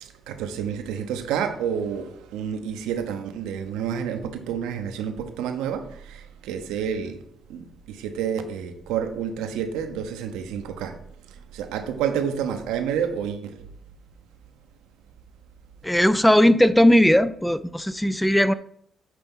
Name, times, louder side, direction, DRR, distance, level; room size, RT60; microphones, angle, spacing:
voice 1, 0.0-7.2 7.5-11.0 11.5-13.6, right 8 dB, 80° right, 0.8 m, -29 dB
voice 2, 15.8-18.5, equal, 5° left, 0.4 m, -18 dB
9.1 x 3.4 x 5.5 m
hypercardioid pair, 45°, 0 cm